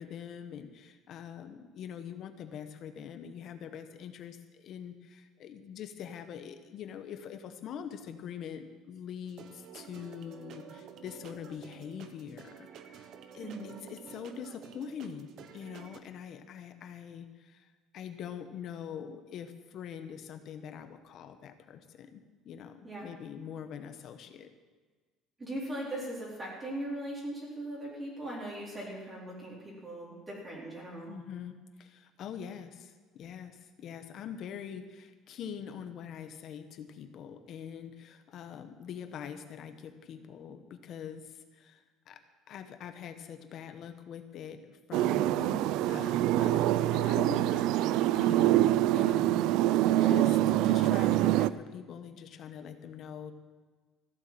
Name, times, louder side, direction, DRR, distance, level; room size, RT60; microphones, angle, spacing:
voice 1, 0.0-13.1 13.3-24.5 31.1-45.4 45.9-49.6 49.9-53.3, left 8 dB, 50° left, 9 dB, 1.1 m, -44 dB
sound 1, 9.2-16.0, right 7 dB, 55° right, 1.0 m, -50 dB
voice 2, 13.4-13.8 22.8-23.1 25.4-31.1 45.3-45.6, right 1 dB, 20° right, -5 dB, 4.0 m, -39 dB
sound 2, 44.9-51.5, right 14 dB, 75° right, 0.4 m, -25 dB
15.0 x 8.3 x 7.5 m, 1.4 s
cardioid pair, 135°, 0 cm